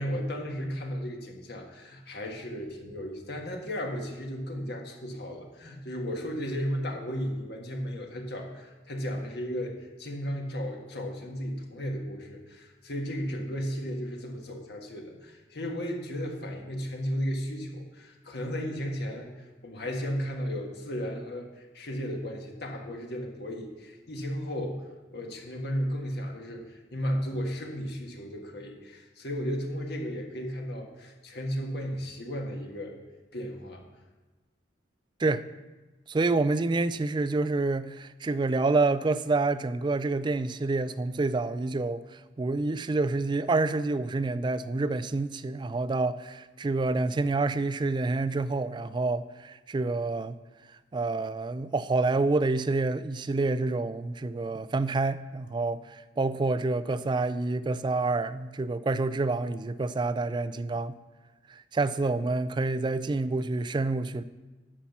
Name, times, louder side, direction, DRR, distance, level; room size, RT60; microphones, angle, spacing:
voice 1, 0.0-24.8 25.1-32.9 33.3-33.8, equal, 60° left, 1.5 m, -34 dB
voice 2, 36.1-50.4 50.9-61.0 61.5-64.2, right 3 dB, 25° right, 0.3 m, -28 dB
9.9 x 5.7 x 7.2 m
head